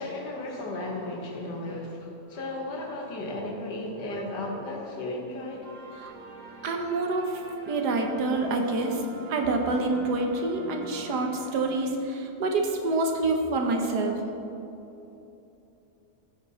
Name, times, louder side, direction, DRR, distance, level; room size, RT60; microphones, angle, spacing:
voice 1, 0.0-5.7, left 2 dB, 85° left, -1 dB, 2.1 m, -35 dB
sound 1, 5.6-12.2, right 2 dB, 50° right, 1.4 m, -45 dB
voice 2, 6.6-9.0 9.3-14.2, right 2 dB, 75° right, 3 dB, 1.5 m, -27 dB
14.5 x 5.9 x 4.2 m, 3.0 s
omnidirectional pair, 1.8 m